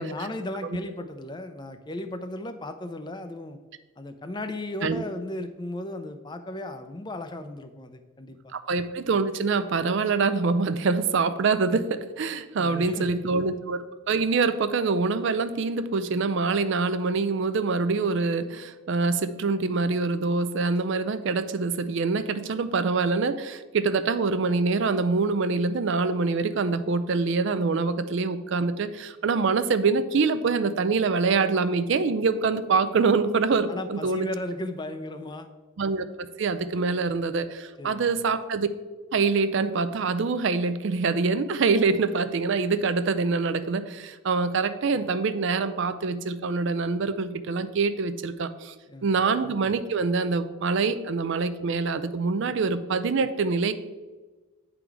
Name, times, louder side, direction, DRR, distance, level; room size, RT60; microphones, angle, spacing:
voice 1, 0.0-3.6 4.0-8.5 12.6-13.3 33.7-35.5 37.8-38.2 48.9-49.1, left 1 dB, 20° left, 8 dB, 0.4 m, -36 dB
voice 2, 8.5-13.8 14.1-34.3 35.8-36.1 36.4-38.7 39.1-48.7 49.0-53.7, right 4 dB, 60° right, 12 dB, 0.4 m, -25 dB
9.1 x 3.8 x 4.6 m, 1.3 s
head